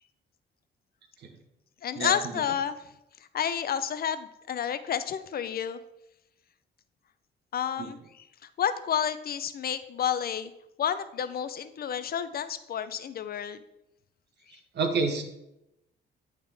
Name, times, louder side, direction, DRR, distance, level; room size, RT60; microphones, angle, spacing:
voice 1, 1.8-2.8 3.3-5.8 7.5-8.3 8.6-10.5 10.8-13.6, left 8 dB, 50° left, 12 dB, 0.5 m, -30 dB
voice 2, 14.7-15.2, right 4 dB, 60° right, 6 dB, 1.2 m, -27 dB
10.5 x 3.6 x 3.4 m, 0.86 s
cardioid pair, 90°, 20 cm